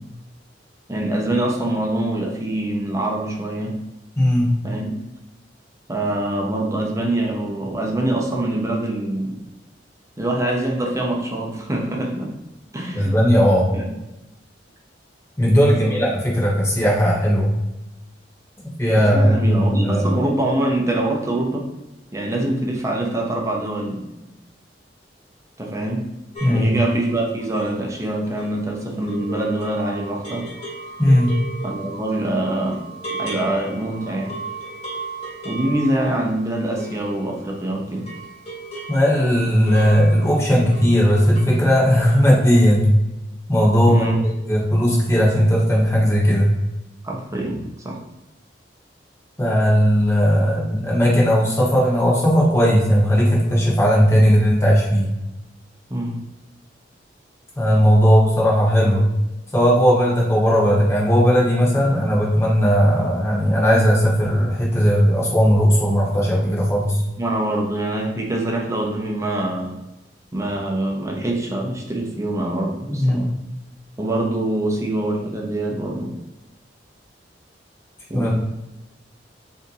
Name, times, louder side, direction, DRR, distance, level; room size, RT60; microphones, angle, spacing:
voice 1, 0.9-3.8 4.6-5.0 5.9-9.4 10.2-12.3 12.7-13.1 13.7-13.9 15.5-16.0 19.0-21.6 22.1-24.1 25.6-26.1 26.5-30.5 31.6-32.8 33.2-34.4 35.4-38.1 43.9-44.2 47.0-47.6 47.8-48.0 55.9-56.2 67.2-69.7 70.3-73.3 74.0-76.1 78.1-78.3, right 1 dB, 15° right, 0 dB, 0.6 m, -24 dB
voice 2, 4.2-4.5 12.9-13.7 15.4-17.5 18.8-20.1 26.4-26.7 31.0-31.3 38.9-42.9 43.5-44.1 44.4-46.5 49.4-55.1 57.6-59.1 59.5-67.0 72.9-73.2 78.1-78.3, equal, 15° left, -4 dB, 1.1 m, -17 dB
sound 1, 26.3-37.6 37.9-41.6 41.9-42.3 42.6-42.7, right 3 dB, 35° left, 1.4 m, -36 dB
3.5 x 2.7 x 4.0 m, 0.96 s
head